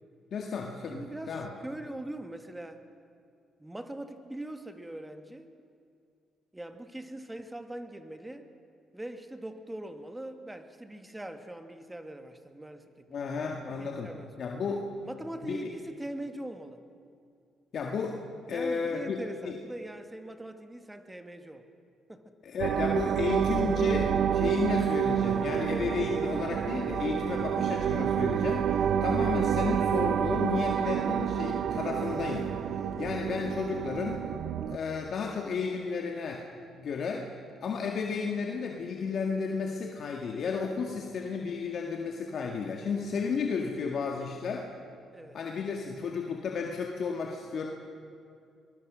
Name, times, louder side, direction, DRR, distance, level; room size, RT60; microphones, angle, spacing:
voice 1, 0.3-1.5 13.1-14.1 14.4-14.9 15.4-15.6 17.7-18.2 18.5-19.2 19.5-19.6 22.4-32.5 33.0-34.3 34.7-36.4 36.8-37.3 37.6-44.7 45.3-47.7, left 5 dB, 60° left, 1 dB, 1.9 m, -33 dB
voice 2, 0.9-2.8 3.6-5.5 6.5-8.5 8.9-14.5 15.0-16.8 18.5-21.7 22.1-22.3 45.1-45.4, right 1 dB, 10° right, 7 dB, 1.7 m, -42 dB
sound 1, 22.6-34.8, right 8 dB, 70° right, 0.7 m, -28 dB
23.0 x 21.0 x 6.3 m, 2.4 s
cardioid pair, 90°, 0 cm